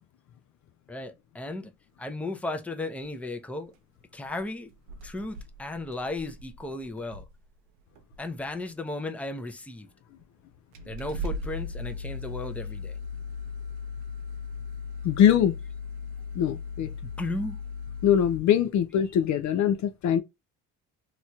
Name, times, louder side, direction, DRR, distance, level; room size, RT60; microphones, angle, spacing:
voice 1, 0.9-1.7 2.0-3.7 4.1-4.7 5.0-7.2 8.2-9.9 10.9-13.0 17.2-17.6, left 2 dB, 5° left, 0.5 m, -35 dB
sound 1, 3.6-3.7 4.2-4.4 4.7-7.4 7.9-8.4 9.3-9.4 10.2-10.3 10.7-18.4, left 3 dB, 85° right, 0.6 m, -37 dB
voice 2, 15.0-15.6 16.4-16.9 18.0-20.2, left 9 dB, 55° left, 0.4 m, -22 dB
3.0 x 2.8 x 2.3 m
supercardioid pair, 70°, 36 cm